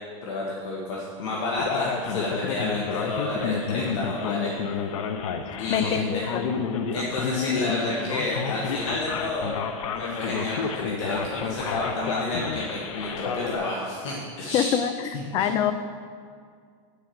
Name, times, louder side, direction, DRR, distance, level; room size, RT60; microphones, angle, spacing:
voice 1, 0.2-4.5 5.6-6.2 6.9-9.5 9.9-14.8 15.1-15.5, left 2 dB, 65° left, -3 dB, 1.5 m, -30 dB
Male speech man speaking, 1.6-13.6, left 6 dB, 90° left, 0.8 m, -30 dB
voice 2, 5.4-6.5 14.5-15.7, left 9 dB, 25° left, 11 dB, 0.4 m, -26 dB
9.9 x 4.8 x 7.5 m, 2.1 s
supercardioid pair, 165°, 17 cm